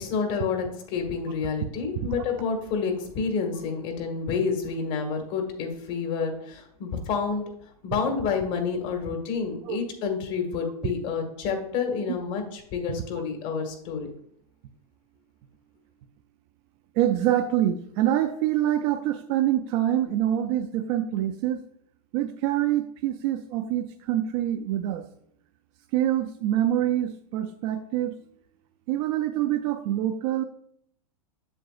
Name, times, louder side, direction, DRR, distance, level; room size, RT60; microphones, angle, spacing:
voice 1, 0.0-7.4 7.8-14.1, left 5 dB, 50° left, 4 dB, 1.8 m, -29 dB
voice 2, 16.9-21.6 22.1-25.1 25.9-28.1 28.9-30.4, right 12 dB, 45° right, 5 dB, 0.5 m, -25 dB
7.7 x 7.2 x 2.5 m, 0.69 s
hypercardioid pair, 115°, 20 cm